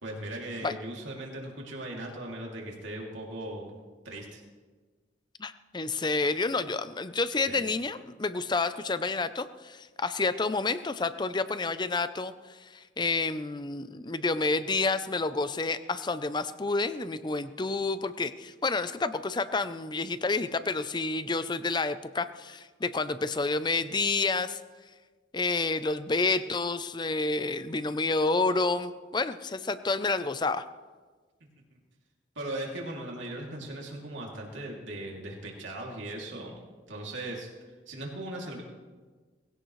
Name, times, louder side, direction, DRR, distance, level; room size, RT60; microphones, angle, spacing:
voice 1, 0.0-3.8 4.0-4.4 7.5-7.6 32.3-36.5 36.9-37.5 37.9-38.6, right 1 dB, 85° right, -1 dB, 2.8 m, -38 dB
voice 2, 5.4-24.6 25.3-30.6, left 3 dB, 25° left, 12 dB, 0.5 m, -29 dB
20.0 x 16.5 x 3.2 m, 1.4 s
head